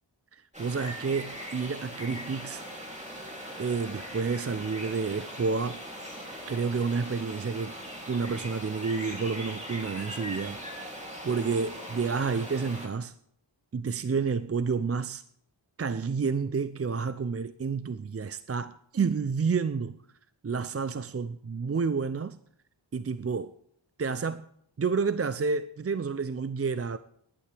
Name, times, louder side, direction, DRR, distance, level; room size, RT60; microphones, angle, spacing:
voice 1, 0.3-2.6 3.6-6.1 6.5-7.8 8.1-10.6 11.2-13.1 13.7-15.2 15.8-20.0 20.4-22.4 22.9-23.5 24.0-24.5 24.8-27.0, right 5 dB, 35° right, 0.4 m, -30 dB
sound 1, 0.5-12.9, equal, 15° right, 2.8 m, -40 dB
19.0 x 11.5 x 3.4 m
wide cardioid pair, 40°, 47 cm